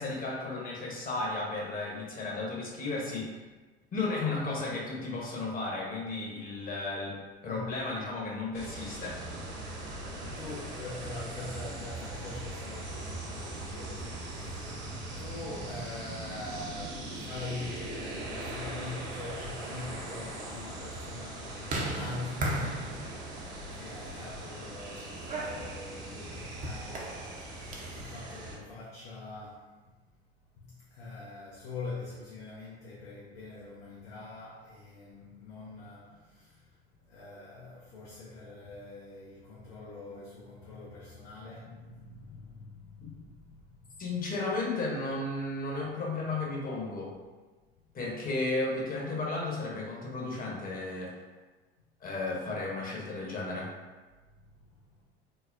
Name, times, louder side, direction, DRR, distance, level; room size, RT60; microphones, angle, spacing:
voice 1, 0.0-3.3 3.9-7.2 7.4-9.2 44.0-47.1 47.9-51.1 52.0-53.7, left 3 dB, 30° left, -3 dB, 0.9 m, -34 dB
sound 1, 8.5-28.5, right 2 dB, 50° right, 1.0 m, -40 dB
voice 2, 10.4-14.8 15.1-22.9 23.7-27.2 27.9-29.7 30.6-36.8 37.0-44.0 54.8-54.9, left 3 dB, 65° left, -5 dB, 0.7 m, -44 dB
sound 2, 19.0-28.1, right 1 dB, 25° right, 0.6 m, -39 dB
4.1 x 2.0 x 2.5 m, 1.3 s
figure-of-eight pair, 70°, 31 cm